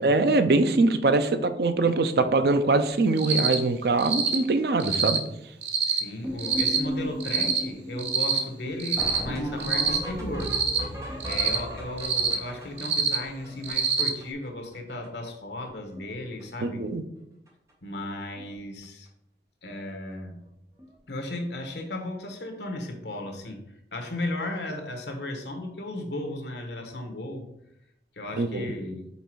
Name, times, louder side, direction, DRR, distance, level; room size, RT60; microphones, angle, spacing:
voice 1, 0.0-5.2 16.6-17.0 28.4-28.7, right 3 dB, 60° right, 9 dB, 0.5 m, -23 dB
Cricket, 3.2-3.6 4.0-4.4 4.8-5.2 5.6-6.0 6.4-6.8 7.2-7.6 8.0-8.4 8.8-9.2 9.6-10.0 10.4-10.8 11.2-11.6 12.0-12.3 12.8-13.2 13.6-14.1, right 7 dB, 80° right, 1.0 m, -25 dB
voice 2, 5.8-10.5 11.3-16.8 17.8-19.1 19.6-20.4 21.1-27.5 28.1-29.1, left 1 dB, 75° left, 4 dB, 1.1 m, -35 dB
sound 1, 6.2-14.5 14.7-14.8 15.0-15.3 15.6-16.1 16.4-16.7 17.5-17.6 18.0-18.1 18.4-18.5 20.8-20.9 23.2-23.3, equal, 15° right, 1.3 m, -36 dB
5.6 x 4.1 x 4.6 m, 0.80 s
head